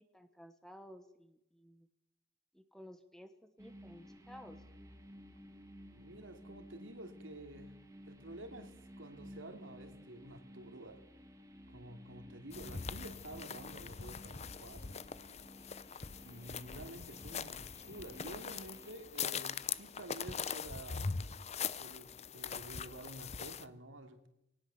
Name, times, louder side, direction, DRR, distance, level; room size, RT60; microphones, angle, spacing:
voice 1, 0.0-1.9 2.5-4.6, equal, ahead, 8 dB, 1.2 m, -55 dB
sound 1, 3.6-18.9, equal, 15° right, 2.2 m, -55 dB
voice 2, 5.9-7.7 8.1-11.0 11.7-15.0 16.2-21.1 21.8-24.3, right 1 dB, 75° right, 6 dB, 2.9 m, -50 dB
sound 2, 12.5-23.6, left 6 dB, 35° left, 0.7 m, -42 dB
20.0 x 18.5 x 7.1 m, 0.85 s
head